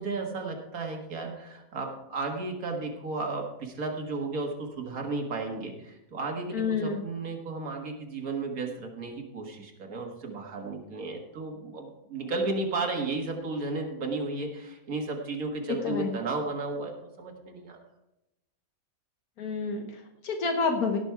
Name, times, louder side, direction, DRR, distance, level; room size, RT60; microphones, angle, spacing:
voice 1, 0.0-17.8, right 3 dB, 75° right, 2 dB, 2.1 m, -34 dB
voice 2, 6.5-7.0 15.7-16.2 19.4-21.0, left 4 dB, 85° left, 4 dB, 1.6 m, -29 dB
17.5 x 6.2 x 4.6 m, 0.93 s
omnidirectional pair, 1.5 m